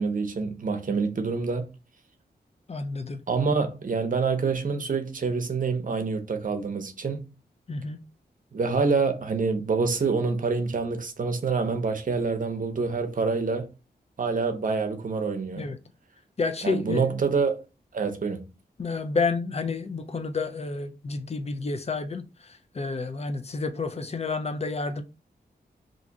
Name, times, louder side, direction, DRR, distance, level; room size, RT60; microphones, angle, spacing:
voice 1, 0.0-1.7 3.3-7.3 8.5-13.7 14.2-15.7 16.6-17.6 17.9-18.5, right 4 dB, 50° right, 0.7 m, -26 dB
voice 2, 2.7-3.2 7.7-8.0 15.6-15.8 16.4-17.1 18.8-25.0, left 4 dB, 40° left, 0.4 m, -30 dB
2.6 x 2.4 x 4.0 m
cardioid pair, 60°, 17 cm